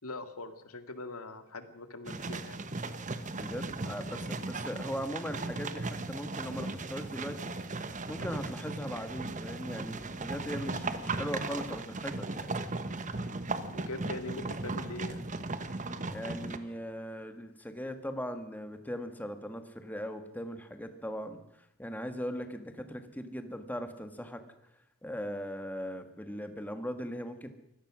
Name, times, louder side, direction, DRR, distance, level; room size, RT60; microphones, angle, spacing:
voice 1, 0.0-2.6 13.7-15.2, left 2 dB, 80° left, 9 dB, 2.2 m, -42 dB
sound 1, 2.0-16.6, right 3 dB, 35° right, 1.2 m, -37 dB
voice 2, 3.3-7.5 8.1-12.5 16.1-24.4 25.0-27.6, equal, 10° left, 8 dB, 1.7 m, -39 dB
24.0 x 17.0 x 6.3 m, 0.82 s
head